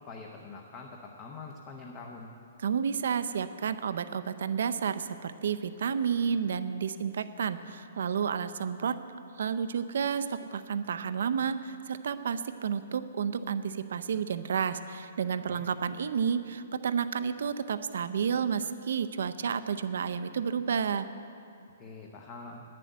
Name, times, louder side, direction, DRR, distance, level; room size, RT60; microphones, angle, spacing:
voice 1, 0.0-0.9 1.2-2.3 15.5-15.6 21.8-22.6, left 4 dB, 20° left, 1 dB, 0.8 m, -44 dB
voice 2, 2.6-9.0 9.4-21.1, right 7 dB, 65° right, 11 dB, 0.6 m, -31 dB
9.9 x 7.6 x 9.3 m, 2.6 s
hypercardioid pair, 170°, 0 cm